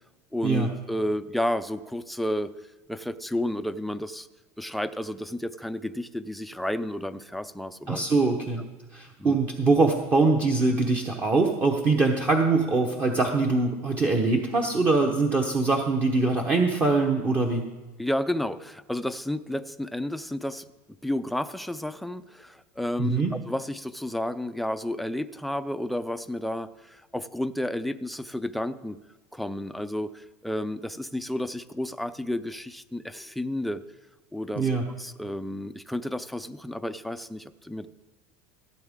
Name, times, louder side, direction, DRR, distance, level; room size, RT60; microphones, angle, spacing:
voice 1, 0.3-2.5 2.9-4.3 4.6-8.0 9.2-9.4 18.0-20.6 21.0-29.0 29.3-33.8 34.3-34.7 35.0-37.9, left 1 dB, ahead, 10 dB, 0.4 m, -31 dB
voice 2, 7.9-8.6 8.9-17.6 23.0-23.3 34.6-34.8, right 3 dB, 25° right, 1 dB, 1.0 m, -23 dB
16.0 x 8.2 x 3.6 m, 1.2 s
supercardioid pair, 140°, 7 cm